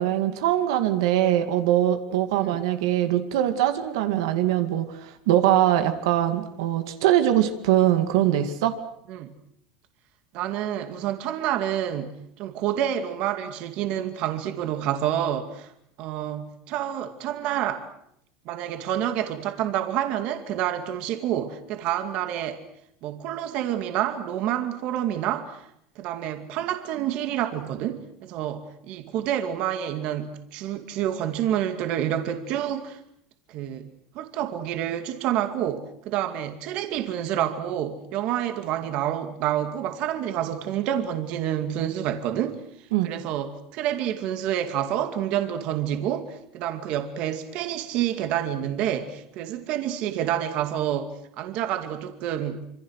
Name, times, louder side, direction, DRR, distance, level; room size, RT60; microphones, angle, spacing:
voice 1, 0.0-8.8 42.9-43.1, right 12 dB, 80° right, 8 dB, 2.3 m, -22 dB
voice 2, 10.3-15.7 16.0-17.8 18.5-22.6 23.0-25.7 26.0-33.0 33.5-33.9 34.1-42.6 43.0-52.6, right 11 dB, 45° right, 7 dB, 2.3 m, -28 dB
26.5 x 26.0 x 6.5 m, 0.74 s
supercardioid pair, 160°, 2 cm